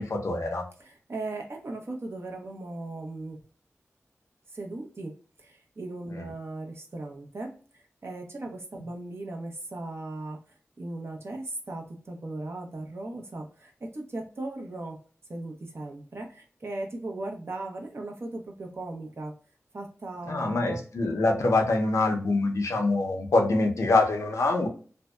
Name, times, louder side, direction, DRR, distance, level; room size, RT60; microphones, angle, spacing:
voice 1, 0.0-0.7 6.1-6.2 20.3-24.7, left 2 dB, 75° left, 2 dB, 0.6 m, -25 dB
voice 2, 0.8-3.4 4.5-5.1 5.4-10.4 10.8-15.0 15.3-19.3 19.7-20.8, right 2 dB, 55° right, 2 dB, 0.7 m, -37 dB
2.6 x 2.1 x 2.2 m, 0.40 s
cardioid pair, 40°, 5 cm